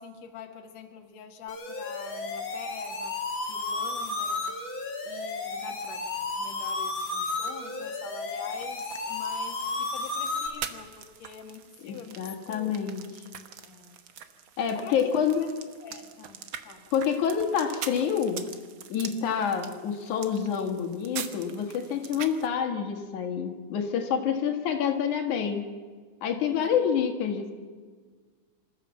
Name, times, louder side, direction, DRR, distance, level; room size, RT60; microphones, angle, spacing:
voice 1, 0.0-3.2 3.5-4.5 5.0-13.0 13.6-14.0 14.7-15.5 15.8-16.9 26.6-26.8, left 7 dB, 65° left, 3 dB, 2.7 m, -45 dB
sound 1, 1.5-10.5, left 3 dB, 40° left, 3.0 m, -33 dB
sound 2, 8.6-22.5, right 8 dB, 55° right, 1.4 m, -44 dB
voice 2, 11.8-13.0 14.6-15.4 16.9-18.5 18.9-25.6 26.2-27.5, left 7 dB, 85° left, 4 dB, 3.1 m, -27 dB
26.0 x 14.0 x 7.2 m, 1.5 s
omnidirectional pair, 3.4 m